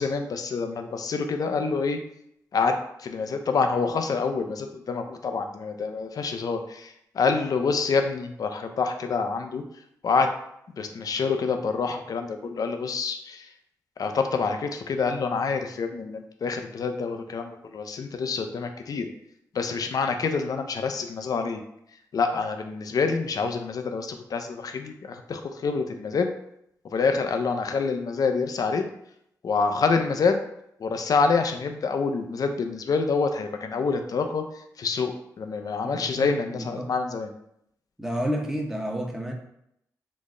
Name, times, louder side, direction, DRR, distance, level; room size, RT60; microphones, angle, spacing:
voice 1, 0.0-2.0 2.5-9.6 10.0-10.3 10.8-13.4 14.0-19.1 19.5-21.6 22.1-26.3 26.9-28.8 29.4-30.4 30.8-34.4 34.8-35.1 35.4-37.3, left 4 dB, 65° left, 6 dB, 0.4 m, -27 dB
voice 2, 35.8-36.9 38.0-39.3, equal, 5° right, 0 dB, 0.8 m, -31 dB
3.8 x 2.0 x 3.6 m, 0.75 s
cardioid pair, 50°, 7 cm